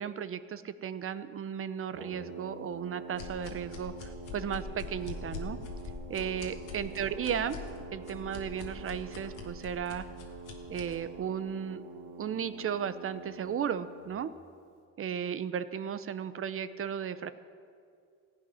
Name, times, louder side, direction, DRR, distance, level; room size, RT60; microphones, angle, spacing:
voice 1, 0.0-5.6 6.1-7.6 7.9-10.0 10.7-11.8 12.2-14.3 15.0-17.3, right 8 dB, 45° right, 13 dB, 0.6 m, -35 dB
Brass instrument, 1.9-14.2, right 3 dB, 80° right, 1.7 m, -46 dB
sound 1, 3.1-11.0, left 5 dB, 90° left, 1.7 m, -44 dB
16.0 x 8.5 x 5.6 m, 2.3 s
cardioid pair, 90°, 30 cm